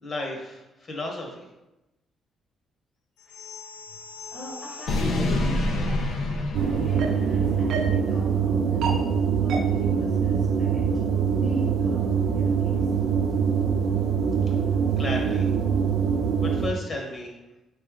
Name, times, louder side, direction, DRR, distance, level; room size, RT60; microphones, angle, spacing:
voice 1, 0.0-1.4 15.0-15.4 16.4-17.3, left 1 dB, 50° left, 0 dB, 1.2 m, -33 dB
sound 1, 3.3-7.6, left 2 dB, 80° left, 0.6 m, -29 dB
voice 2, 4.3-6.2 6.5-8.9 9.4-10.9 11.3-12.9, equal, 30° left, -3 dB, 1.0 m, -37 dB
sound 2, 6.5-16.7, right 7 dB, 80° right, 0.5 m, -24 dB
4.2 x 3.2 x 3.7 m, 0.96 s
cardioid pair, 90°, 0 cm